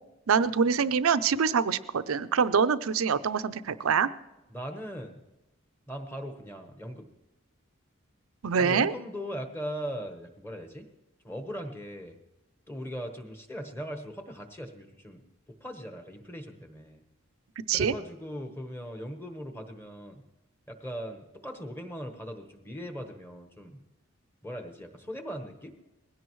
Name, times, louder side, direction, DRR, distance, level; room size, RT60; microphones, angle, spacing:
voice 1, 0.3-4.1 8.4-8.9 17.7-17.9, right 6 dB, 85° right, 13 dB, 0.6 m, -25 dB
voice 2, 4.5-5.2 5.9-7.1 8.6-10.8 11.2-12.1 12.7-15.2 15.6-17.0 17.7-20.2 20.7-23.8 24.4-25.7, equal, 10° left, 5 dB, 1.2 m, -39 dB
20.5 x 16.0 x 3.1 m, 1.0 s
head